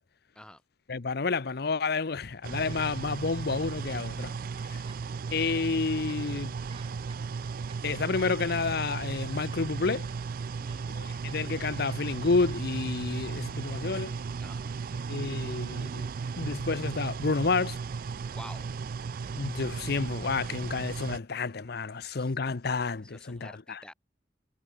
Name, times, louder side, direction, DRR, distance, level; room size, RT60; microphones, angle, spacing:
voice 1, 0.9-4.3 4.7-4.8 5.3-6.5 7.8-10.1 10.9-14.1 15.1-16.1 16.4-17.8 19.3-23.8, left 4 dB, 60° left, 0.8 m, -30 dB
sound 1, 2.4-21.2, right 5 dB, 55° right, 0.4 m, -35 dB
sound 2, 4.9-5.8 6.1-6.2 6.6-10.3 10.7-11.5 11.8-12.6, right 5 dB, 30° right, 5.4 m, -56 dB
voice 2, 10.6-10.9 14.4-14.7 18.3-18.7 22.0-22.3 23.0-23.9, left 1 dB, 5° left, 2.0 m, -49 dB
head